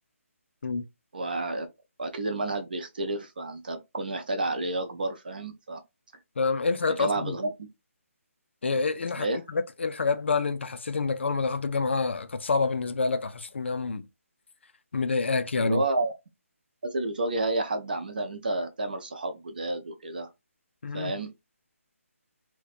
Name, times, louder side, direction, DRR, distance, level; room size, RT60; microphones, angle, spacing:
voice 1, 1.1-1.7 2.0-5.8 6.9-7.5 9.2-9.4 15.6-16.1 16.8-20.3 20.9-21.3, right 2 dB, 40° right, 0.5 m, -30 dB
voice 2, 6.4-7.4 8.6-14.1 14.9-15.9 20.8-21.1, left 4 dB, 50° left, 0.3 m, -27 dB
2.6 x 2.1 x 2.4 m
hypercardioid pair, 175°, 8 cm